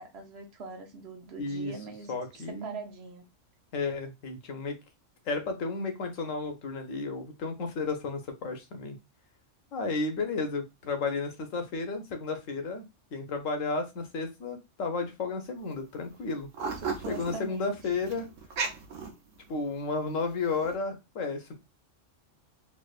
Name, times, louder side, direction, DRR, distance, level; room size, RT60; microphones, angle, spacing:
voice 1, 0.0-3.3 16.8-17.8, right 4 dB, 60° right, 1.0 m, -43 dB
voice 2, 1.4-1.7 2.1-2.8 3.7-4.8 5.3-9.0 9.7-12.8 13.1-16.5 17.1-18.3 19.5-21.5, left 4 dB, 90° left, 1.2 m, -33 dB
sound 1, 15.6-15.7 16.0-19.7 20.2-20.8, right 5 dB, 85° right, 1.1 m, -35 dB
3.4 x 2.8 x 2.4 m
omnidirectional pair, 1.3 m